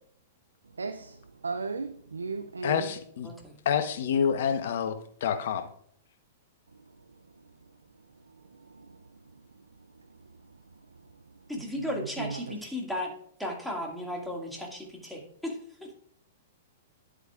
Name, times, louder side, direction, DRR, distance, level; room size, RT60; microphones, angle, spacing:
voice 1, 0.8-2.9 8.3-9.1 9.3-9.4 10.1-10.5 11.8-12.5, right 4 dB, 85° right, 0.4 m, -37 dB
voice 2, 2.6-3.3 3.6-4.9 5.2-5.7, left 7 dB, 60° left, 1.0 m, -27 dB
voice 3, 3.2-3.6 11.5-13.1 13.4-15.9, left 1 dB, ahead, 2.1 m, -35 dB
10.0 x 8.1 x 2.5 m
hypercardioid pair, 110°, 0 cm